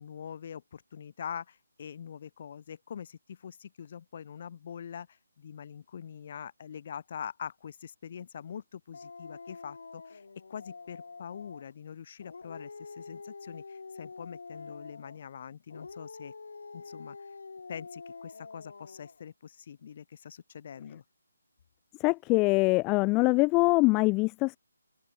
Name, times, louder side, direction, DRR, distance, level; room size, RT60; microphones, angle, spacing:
voice 1, 0.0-10.2 10.5-16.3 16.7-17.2 17.7-21.0, left 8 dB, 45° left, 7.1 m, -44 dB
Dog, 8.9-11.7 12.2-15.3 15.7-19.2, left 4 dB, 70° left, 5.1 m, -46 dB
voice 2, 22.0-24.6, left 25 dB, 20° left, 0.4 m, -24 dB
open air
figure-of-eight pair, 155°, 0 cm